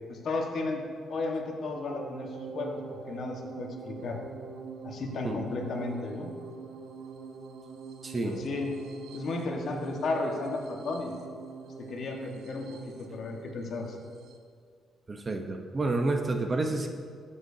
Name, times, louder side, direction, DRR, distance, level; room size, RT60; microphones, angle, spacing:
voice 1, 0.1-0.8 1.1-4.2 4.8-6.3 8.2-8.7 9.1-11.1 11.8-14.0, left 3 dB, 60° left, 1 dB, 1.4 m, -34 dB
sound 1, 1.9-14.4, right 5 dB, 85° right, 0.8 m, -44 dB
voice 2, 8.0-8.4 15.1-16.9, right 2 dB, 30° right, 4 dB, 0.9 m, -29 dB
14.0 x 7.0 x 2.8 m, 2.1 s
cardioid pair, 90°, 0 cm